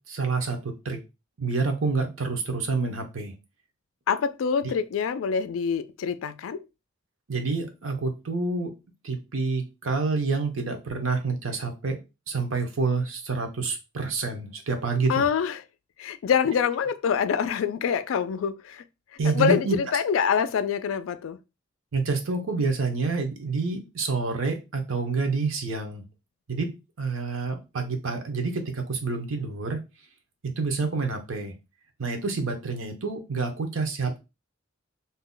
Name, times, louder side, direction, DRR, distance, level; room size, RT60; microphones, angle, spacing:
voice 1, 0.1-1.0 1.4-3.3 4.6-4.7 7.3-8.7 9.0-12.0 12.3-15.2 19.2-19.8 21.9-26.0 26.5-26.7 27.0-29.8 30.6-31.5 32.0-34.2, right 4 dB, 85° right, 0.8 m, -28 dB
voice 2, 4.1-6.6 15.1-15.6 16.0-18.8 19.2-21.4, left 7 dB, 80° left, 0.3 m, -25 dB
2.7 x 2.1 x 3.7 m
head